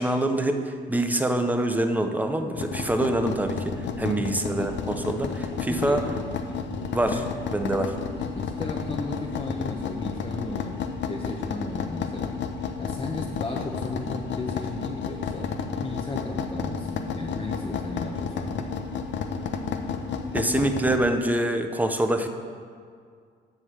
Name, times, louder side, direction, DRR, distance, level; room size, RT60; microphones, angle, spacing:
voice 1, 0.0-6.0 6.9-7.2 7.5-8.0 20.3-22.3, right 1 dB, 10° right, 6 dB, 0.8 m, -25 dB
sound 1, 2.5-21.0, left 5 dB, 65° left, 0.8 m, -32 dB
voice 2, 4.0-4.3 5.7-6.0 7.0-7.2 8.2-12.3 12.7-18.7, left 2 dB, 25° left, -2 dB, 1.0 m, -35 dB
sound 2, 4.0-9.5, right 2 dB, 75° right, 2.2 m, -47 dB
7.9 x 6.2 x 7.6 m, 2.1 s
cardioid pair, 90°, 20 cm